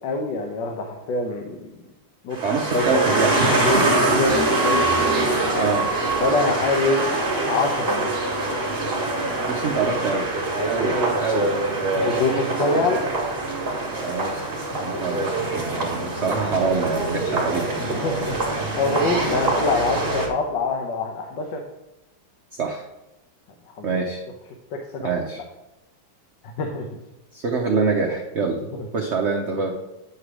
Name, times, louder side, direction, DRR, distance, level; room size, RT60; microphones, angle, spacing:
voice 1, 0.0-1.7 2.2-2.4 2.7-3.0 3.3-4.9 6.2-8.1 11.9-13.0 14.9-15.1 17.8-21.6 23.7-23.9 24.7-25.1 26.6-26.9 28.7-28.9, left 3 dB, 70° left, 2 dB, 1.4 m, -25 dB
sound 1, 2.3-20.3, right 2 dB, 35° right, 1.4 m, -24 dB
voice 2, 2.4-3.9 4.9-5.0 5.6-5.9 9.5-10.3 10.7-11.5 13.9-14.5 14.8-17.7 22.5-22.8 23.8-24.2 25.0-25.4 27.3-28.6 28.9-29.7, right 5 dB, 80° right, 2 dB, 0.6 m, -25 dB
9.4 x 3.3 x 6.0 m, 0.96 s
omnidirectional pair, 2.1 m